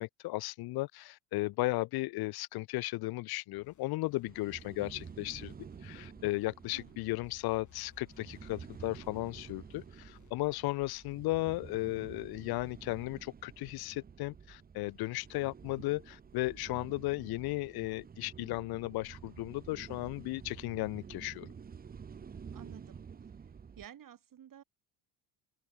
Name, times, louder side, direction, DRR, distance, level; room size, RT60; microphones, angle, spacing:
voice 1, 0.0-5.5 5.8-21.5, left 20 dB, 60° left, 0.5 m, -35 dB
sound 1, 3.5-10.4, left 8 dB, 40° left, 6.2 m, -63 dB
sound 2, 4.2-23.9, right 6 dB, 20° right, 0.7 m, -50 dB
voice 2, 22.5-23.0 23.8-24.6, right 10 dB, 45° right, 6.0 m, -52 dB
cardioid pair, 105°, 44 cm